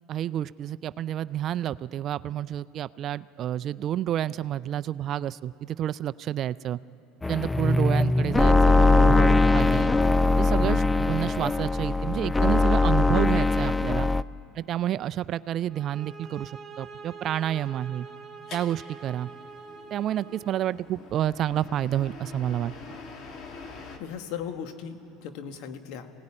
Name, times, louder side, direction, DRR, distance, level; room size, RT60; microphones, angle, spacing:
voice 1, 0.1-6.8 7.3-9.9 10.4-14.1 14.5-18.1 18.5-19.3 19.9-22.7, right 11 dB, 50° right, 16 dB, 0.4 m, -29 dB
sound 1, 7.2-14.2, left 2 dB, 15° left, 0.5 m, -21 dB
sound 2, 15.7-20.7, right 4 dB, 20° right, 2.6 m, -45 dB
sound 3, 18.5-24.0, left 4 dB, 50° left, 2.7 m, -45 dB
voice 2, 24.0-26.1, left 8 dB, 65° left, 7 dB, 1.7 m, -37 dB
24.5 x 17.5 x 9.9 m, 3.0 s
supercardioid pair, 90°, 0 cm